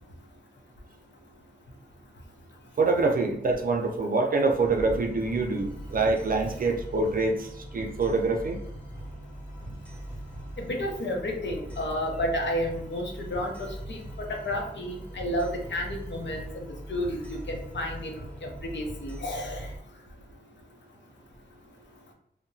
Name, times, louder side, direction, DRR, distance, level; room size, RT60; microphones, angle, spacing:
voice 1, 2.8-8.6, right 3 dB, 50° right, 3 dB, 0.4 m, -25 dB
sound 1, 4.6-19.8, right 1 dB, 5° left, 0.7 m, -41 dB
voice 2, 10.6-19.7, left 1 dB, 85° left, 1 dB, 0.7 m, -32 dB
2.8 x 2.1 x 2.6 m, 0.79 s
wide cardioid pair, 120°, 18 cm